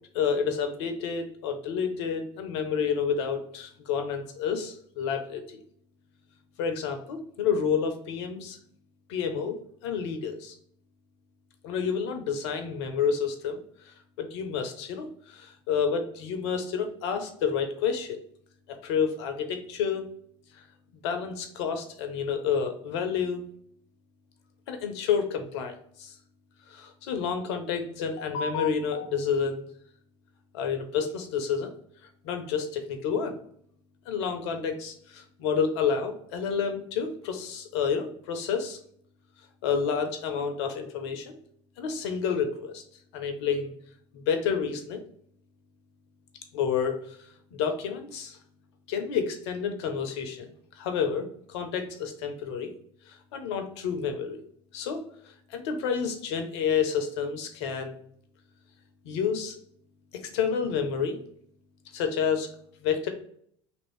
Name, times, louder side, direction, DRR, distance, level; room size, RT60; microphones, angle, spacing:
voice 1, 0.1-5.6 6.6-8.6 9.1-9.6 9.8-10.5 11.6-13.6 13.9-18.2 18.8-20.0 21.0-23.4 24.7-25.7 26.0-26.1 26.7-29.7 30.5-31.7 32.2-33.4 34.1-38.8 39.6-41.3 41.8-42.8 43.1-43.7 44.1-45.0 46.5-47.2 47.5-48.4 48.9-50.5 50.8-52.7 53.1-54.4 54.7-58.0 59.0-59.5 60.3-61.2 61.9-62.5 62.8-63.1, left 6 dB, 70° left, 6 dB, 0.6 m, -29 dB
2.8 x 2.6 x 3.1 m, 0.65 s
hypercardioid pair, 75°, 15 cm